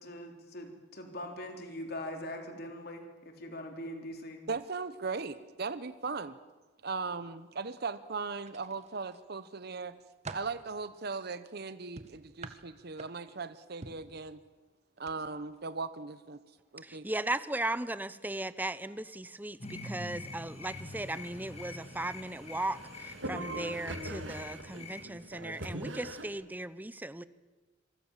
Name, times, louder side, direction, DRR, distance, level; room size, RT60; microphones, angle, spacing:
voice 1, 0.0-4.4, left 1 dB, 55° left, 4 dB, 3.7 m, -42 dB
voice 2, 4.5-6.4 6.8-9.9 10.3-14.4 15.0-16.4 16.7-17.1, right 4 dB, 55° right, 13 dB, 0.9 m, -38 dB
sound 1, 8.4-9.2 9.7-10.6 12.0-13.4 13.8-14.1 15.0-15.2 15.5-15.7, right 3 dB, 35° right, 1.6 m, -46 dB
voice 3, 16.8-27.2, right 1 dB, 10° right, 15 dB, 0.8 m, -37 dB
sound 2, 19.6-25.1, left 2 dB, 35° left, 2.2 m, -45 dB
sound 3, 20.8-26.3, right 1 dB, 75° right, 2.4 m, -43 dB
26.5 x 23.5 x 7.4 m, 1.2 s
head